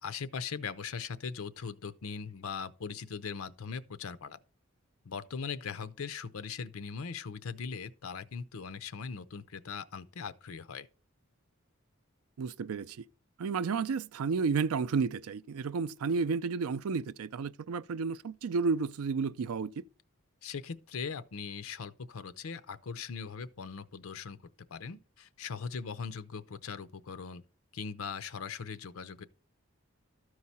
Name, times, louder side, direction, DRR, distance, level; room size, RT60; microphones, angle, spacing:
voice 1, 0.0-4.4 5.0-10.9 20.4-24.4 24.7-27.4 27.7-29.2, left 5 dB, 75° left, 0.6 m, -40 dB
voice 2, 12.4-13.0 13.4-19.8, right 5 dB, 85° right, 0.4 m, -32 dB
13.0 x 4.7 x 4.2 m
head